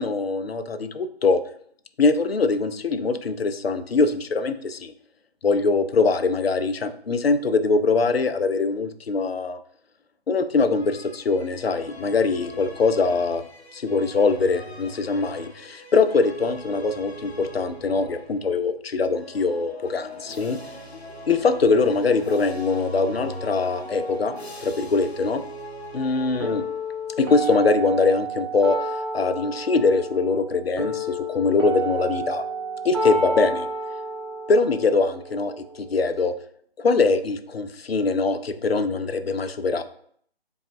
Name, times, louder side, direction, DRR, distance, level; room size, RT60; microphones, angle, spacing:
voice 1, 0.0-1.4 2.0-4.9 5.4-9.6 10.3-13.4 13.7-20.6 21.3-24.3 24.6-25.4 25.9-26.6 27.2-28.8 29.1-32.4 32.8-33.7 34.5-35.5 35.8-36.3 36.8-39.8, left 4 dB, 70° left, 10 dB, 0.4 m, -22 dB
sound 1, 10.6-18.5 19.1-27.0, equal, 85° left, 0.8 m, -40 dB
sound 2, 26.4-36.4, right 1 dB, 25° right, 0.8 m, -31 dB
5.0 x 2.4 x 2.6 m, 0.63 s
figure-of-eight pair, 155°, 31 cm